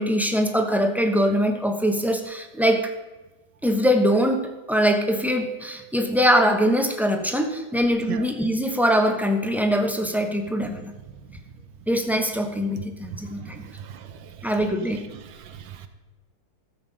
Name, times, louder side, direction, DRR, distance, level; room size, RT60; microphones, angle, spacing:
voice 1, 0.0-2.9 3.6-10.9 11.9-13.6 14.4-15.0, equal, ahead, 4 dB, 0.7 m, -22 dB
voice 2, 13.1-14.5 15.1-15.9, right 8 dB, 90° right, 8 dB, 1.4 m, -38 dB
13.5 x 7.8 x 5.3 m, 1.2 s
omnidirectional pair, 1.8 m